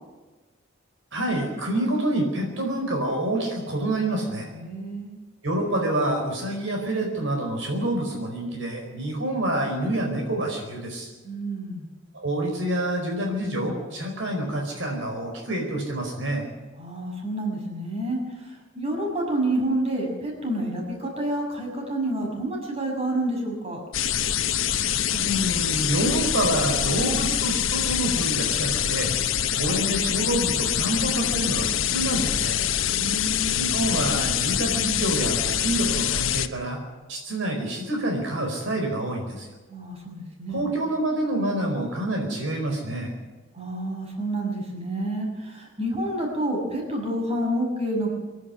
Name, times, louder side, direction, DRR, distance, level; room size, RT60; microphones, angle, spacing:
voice 1, 1.1-4.5 5.4-11.1 12.1-16.4 25.1-29.1 29.5-32.6 33.6-36.8 37.1-39.5 40.5-43.1, right 1 dB, 65° right, 1 dB, 4.7 m, -27 dB
voice 2, 4.5-5.1 11.2-11.9 16.8-18.2 18.7-23.8 32.8-33.6 39.7-40.7 43.5-48.1, right 1 dB, 30° right, 0 dB, 6.3 m, -28 dB
sound 1, 23.9-36.5, left 10 dB, 75° left, 1.1 m, -25 dB
26.0 x 11.5 x 9.7 m, 1.2 s
head